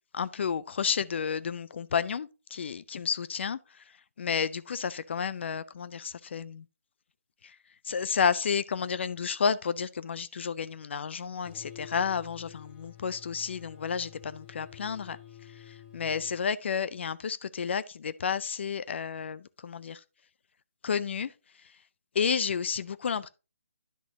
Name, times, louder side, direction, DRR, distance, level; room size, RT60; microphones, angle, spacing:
voice 1, 0.1-3.8 4.2-6.7 7.4-7.6 7.8-20.0 20.8-21.3 22.1-23.3, left 6 dB, 55° left, 0.4 m, -31 dB
sound 1, 11.4-16.4, left 11 dB, 25° left, 1.3 m, -50 dB
10.5 x 6.0 x 2.8 m
figure-of-eight pair, 150°, 8 cm